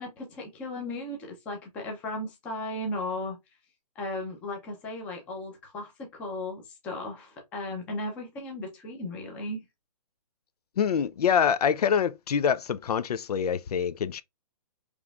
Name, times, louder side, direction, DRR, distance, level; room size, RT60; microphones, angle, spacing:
voice 1, 0.0-3.4 4.0-9.6, left 1 dB, 5° left, 0.6 m, -36 dB
voice 2, 10.8-14.2, left 7 dB, 75° left, 0.5 m, -25 dB
5.1 x 3.1 x 2.4 m
hypercardioid pair, 175°, 20 cm